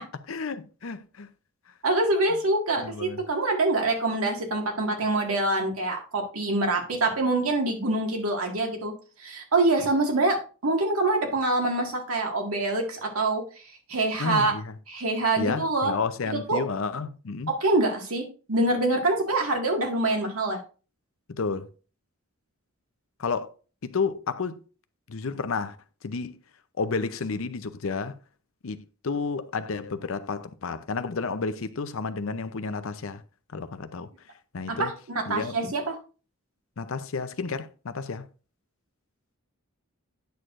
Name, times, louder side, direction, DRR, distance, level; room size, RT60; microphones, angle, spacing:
voice 1, 0.3-1.3 2.8-3.2 14.2-14.7 15.4-17.5 21.3-21.7 23.2-23.5 23.8-24.6 25.1-25.8 26.0-26.4 26.8-28.2 28.6-33.2 33.5-34.1 34.5-34.9 35.3-35.5 36.8-38.3, left 4 dB, 65° left, 0.6 m, -31 dB
voice 2, 1.8-8.9 9.2-10.4 10.6-13.4 13.9-14.5 14.9-15.9 16.5-16.6 17.5-20.6 34.7-36.0, right 2 dB, 85° right, 1.9 m, -25 dB
9.2 x 6.5 x 2.5 m
head